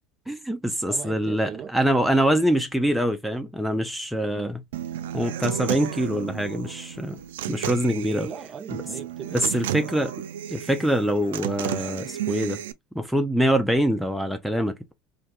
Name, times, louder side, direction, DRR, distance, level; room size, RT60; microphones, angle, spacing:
voice 1, 0.3-4.6 5.1-7.2 7.5-8.3 9.3-10.1 10.5-12.6 12.9-14.9, equal, ahead, 0.5 m, -24 dB
voice 2, 0.9-1.7 4.3-4.5 7.9-9.6, right 7 dB, 40° right, 0.7 m, -38 dB
Human voice / Acoustic guitar, 4.7-12.7, right 11 dB, 85° right, 0.3 m, -33 dB
3.4 x 2.7 x 2.3 m
supercardioid pair, 95°, 0 cm